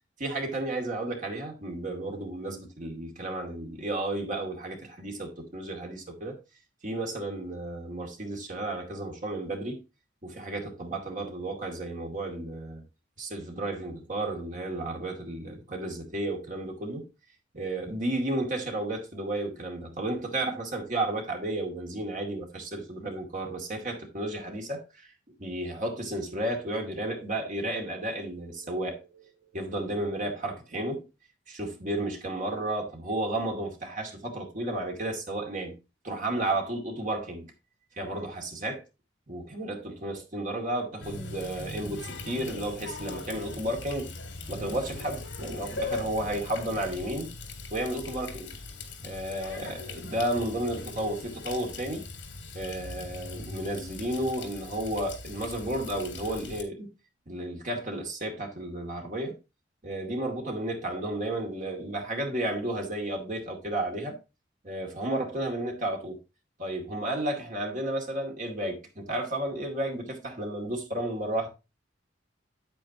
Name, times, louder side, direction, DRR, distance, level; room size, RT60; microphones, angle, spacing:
voice 1, 0.2-6.4 6.8-9.8 10.2-12.8 13.2-17.1 17.5-25.1 25.4-31.1 31.5-35.8 36.0-37.5 38.0-38.8 39.3-44.1 44.5-47.3 47.7-48.6 49.0-52.1 52.5-56.9 57.3-59.4 59.8-64.2 64.6-66.2 66.6-71.5, right 1 dB, 45° right, 2.3 m, -32 dB
Water tap faucet, 41.0-56.6, left 3 dB, 70° left, 2.1 m, -40 dB
8.8 x 8.5 x 2.8 m
head